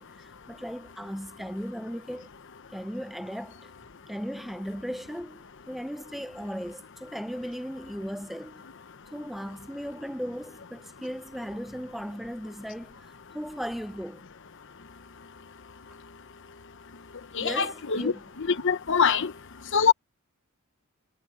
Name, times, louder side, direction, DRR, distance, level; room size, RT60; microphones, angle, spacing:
voice 1, 0.0-2.3 2.7-3.7 4.1-8.7 9.1-14.2 17.4-18.2 19.2-19.3, equal, ahead, 0.7 m, -37 dB
voice 2, 17.4-18.1 18.4-19.3 19.7-19.9, left 6 dB, 60° left, 0.9 m, -23 dB
head